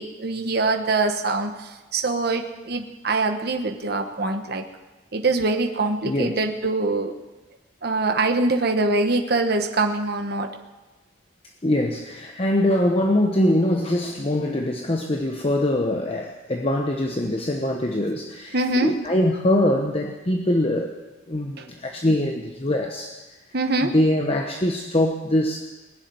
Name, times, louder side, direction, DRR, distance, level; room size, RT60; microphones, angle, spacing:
voice 1, 0.0-4.6 5.1-7.2 7.8-10.5 18.5-18.9 21.6-21.7 23.5-24.0, right 3 dB, 55° right, 5 dB, 1.2 m, -24 dB
voice 2, 6.0-6.4 11.6-20.9 21.3-23.2 23.9-25.6, left 1 dB, 30° left, 2 dB, 1.0 m, -23 dB
20.5 x 7.3 x 9.7 m, 1.1 s
head